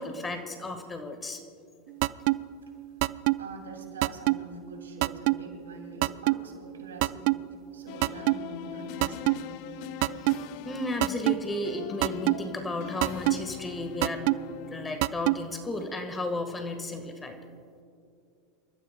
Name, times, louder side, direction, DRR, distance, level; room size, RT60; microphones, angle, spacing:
voice 1, 0.0-1.4 10.2-10.4 10.6-14.3 14.7-17.4, left 2 dB, 15° left, 6 dB, 1.6 m, -34 dB
sound 1, 2.0-2.4 3.0-3.4 4.0-4.4 5.0-5.4 6.0-6.4 7.0-7.4 8.0-8.4 9.0-9.4 10.0-10.4 11.0-11.4 12.0-12.4 13.0-13.4 14.0-14.4 15.0-15.4, right 25 dB, 60° right, 0.3 m, -22 dB
voice 2, 3.4-7.4 7.7-9.5, right 2 dB, 85° right, 3 dB, 2.7 m, -44 dB
sound 2, 7.9-15.3, left 12 dB, 55° left, 0.6 m, -42 dB
27.5 x 14.0 x 2.3 m, 2.4 s
hypercardioid pair, 95°, 0 cm